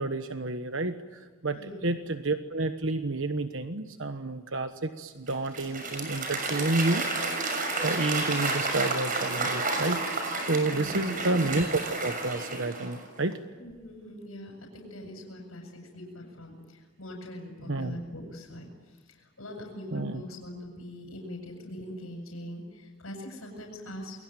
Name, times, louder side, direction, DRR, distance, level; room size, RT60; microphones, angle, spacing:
voice 1, 0.0-7.1 7.8-13.4 17.7-18.0 19.9-20.2, right 2 dB, 60° right, 8 dB, 1.2 m, -30 dB
Applause / Crowd, 5.3-13.1, right 3 dB, 40° right, 6.5 m, -31 dB
voice 2, 10.6-11.3 13.6-24.2, left 1 dB, 80° left, 2 dB, 7.6 m, -42 dB
29.0 x 22.5 x 9.1 m, 1.5 s
head